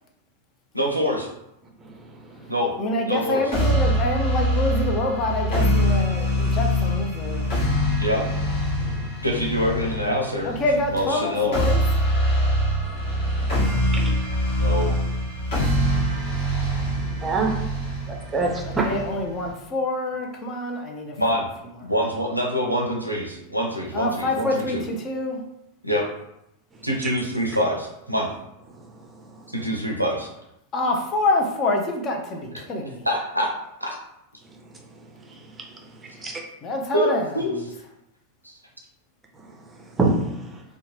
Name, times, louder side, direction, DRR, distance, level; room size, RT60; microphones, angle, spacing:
voice 1, 0.7-1.3 2.5-2.7 3.1-3.5 8.0-8.3 9.2-10.5 10.9-11.6 14.6-15.0 21.2-21.5 21.8-24.8 25.8-26.1 26.8-28.3 29.5-30.3 33.0-33.5 33.8-33.9 36.9-37.1 37.3-37.5 38.4-38.5, equal, 90° right, 0 dB, 0.5 m, -25 dB
voice 2, 2.8-7.4 10.4-12.1 18.8-21.2 23.9-25.4 30.7-33.1 36.6-37.3, left 2 dB, 30° left, 1 dB, 0.5 m, -26 dB
sound 1, 3.5-19.5, equal, 50° left, 1.2 m, -24 dB
voice 3, 13.7-14.1 15.7-17.6 18.1-18.9 35.9-36.4 39.7-40.6, right 3 dB, 15° right, 1 dB, 0.6 m, -28 dB
2.7 x 2.1 x 2.9 m, 0.83 s
figure-of-eight pair, 90°, 0 cm